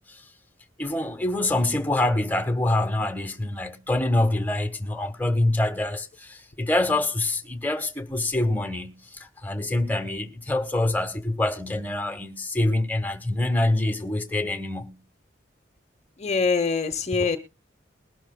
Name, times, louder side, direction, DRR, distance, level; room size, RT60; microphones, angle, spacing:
voice 1, 0.8-15.0, left 2 dB, 10° left, 1.3 m, -25 dB
voice 2, 16.2-17.4, left 4 dB, 35° left, 0.9 m, -24 dB
21.5 x 12.0 x 2.2 m
head